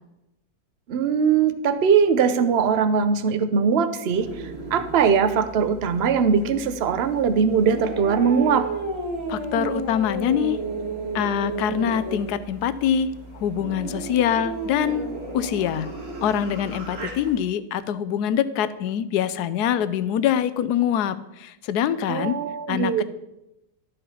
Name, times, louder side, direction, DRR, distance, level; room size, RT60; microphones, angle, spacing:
voice 1, 0.9-4.3 4.7-8.7 22.1-23.0, right 6 dB, 60° right, 11 dB, 0.7 m, -21 dB
sound 1, 4.1-17.4, right 3 dB, 40° right, 1.8 m, -33 dB
voice 2, 9.3-10.6 11.1-15.1 15.3-15.9 16.2-22.4 22.7-23.0, left 9 dB, 75° left, 14 dB, 1.1 m, -24 dB
12.5 x 5.6 x 5.5 m, 0.91 s
omnidirectional pair, 1.8 m